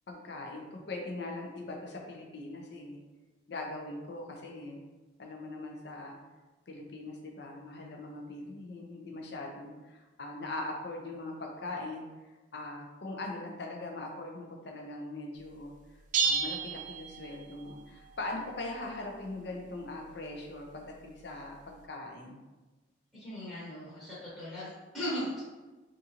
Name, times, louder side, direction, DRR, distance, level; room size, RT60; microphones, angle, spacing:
voice 1, 0.1-3.0 3.5-4.8 5.2-6.2 6.7-15.7 16.2-22.4, left 2 dB, 55° left, 1 dB, 0.5 m, -41 dB
sound 1, 16.1-17.7, right 5 dB, 45° right, 0.3 m, -31 dB
voice 2, 23.1-25.4, equal, 5° left, -12 dB, 0.9 m, -38 dB
3.7 x 2.6 x 2.8 m, 1.2 s
head